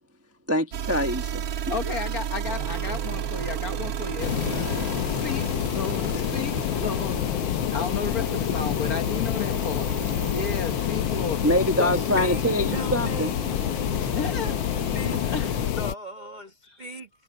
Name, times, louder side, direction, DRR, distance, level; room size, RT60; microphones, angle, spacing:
voice 1, 0.5-1.4 1.7-1.9 6.1-6.2 11.4-13.3 14.0-14.1, equal, 10° right, 0.9 m, -25 dB
sound 1, 0.7-12.8, right 9 dB, 65° right, 0.9 m, -35 dB
voice 2, 1.7-4.7 5.2-7.2 7.7-9.9 10.3-11.4 11.8-11.9 14.1-14.6 15.2-15.6, left 5 dB, 50° left, 1.5 m, -33 dB
sound 2, 2.4-15.7, right 8 dB, 80° right, 2.3 m, -37 dB
sound 3, 4.2-15.9, left 12 dB, 75° left, 1.3 m, -27 dB
voice 3, 11.9-12.4 12.7-13.4 14.9-15.3 15.7-17.2, right 1 dB, 25° right, 1.2 m, -38 dB
omnidirectional pair, 2.3 m